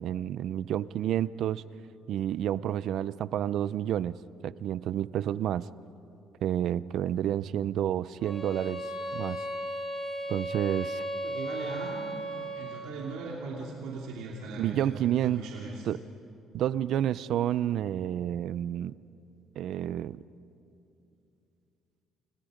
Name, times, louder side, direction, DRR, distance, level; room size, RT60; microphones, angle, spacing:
voice 1, 0.0-1.6 2.1-4.2 4.4-5.7 6.4-9.4 10.3-11.0 14.6-15.4 15.9-16.0 16.5-19.0 19.6-20.2, right 11 dB, 60° right, 18 dB, 0.5 m, -30 dB
sound 1, 8.2-13.0, right 1 dB, 30° left, 4.2 m, -35 dB
voice 2, 11.2-12.0 12.5-15.9, right 4 dB, 90° right, -3 dB, 3.0 m, -39 dB
29.0 x 29.0 x 5.1 m, 2.7 s
cardioid pair, 145°, 0 cm